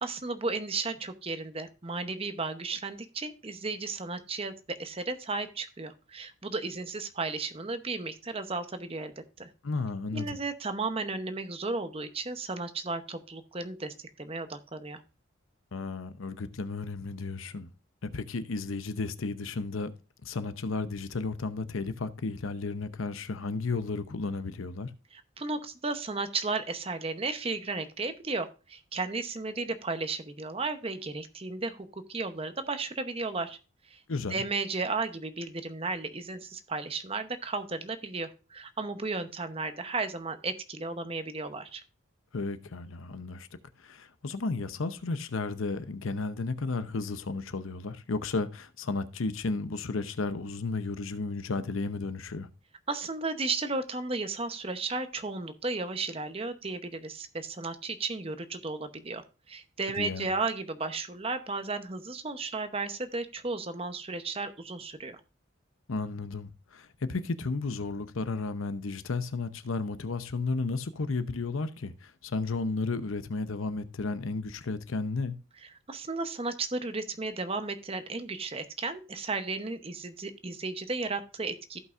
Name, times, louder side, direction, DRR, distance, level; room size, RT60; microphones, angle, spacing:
voice 1, 0.0-9.5 10.1-15.0 25.1-33.6 33.8-34.0 34.3-41.8 52.9-65.2 75.9-81.8, right 3 dB, 30° right, 0.8 m, -34 dB
voice 2, 9.6-10.4 15.7-17.7 18.0-19.9 20.2-24.9 34.1-34.4 42.3-43.5 43.8-52.5 59.9-60.3 65.9-75.4, left 3 dB, 85° left, 0.8 m, -33 dB
15.5 x 5.5 x 2.5 m
head